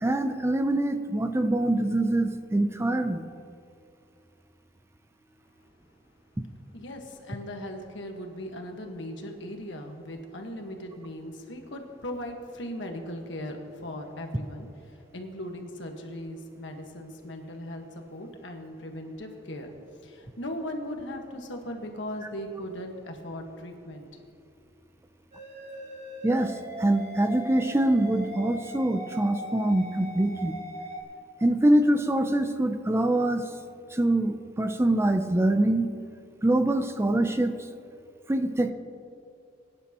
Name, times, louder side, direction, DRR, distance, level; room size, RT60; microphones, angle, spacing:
voice 1, 0.0-3.2 26.2-26.5 26.8-30.6 31.4-33.4 34.0-35.9 36.4-37.5 38.3-38.7, right 1 dB, 15° right, 8 dB, 0.5 m, -24 dB
voice 2, 6.7-14.7 15.0-19.7 20.0-24.1, left 1 dB, 75° left, 3 dB, 1.5 m, -38 dB
sound 1, 25.3-31.0, equal, 40° right, 1.9 m, -39 dB
22.5 x 10.5 x 3.0 m, 2.4 s
head